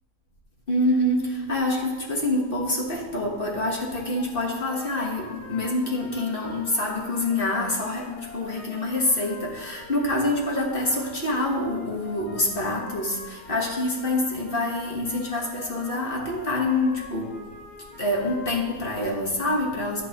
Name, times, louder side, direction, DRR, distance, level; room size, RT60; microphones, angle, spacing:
voice 1, 0.7-17.4 18.0-20.1, left 1 dB, 40° left, -1 dB, 1.1 m, -26 dB
sound 1, 4.0-19.1, left 3 dB, 60° left, 1.7 m, -45 dB
10.0 x 8.0 x 2.8 m, 1.3 s
omnidirectional pair, 1.8 m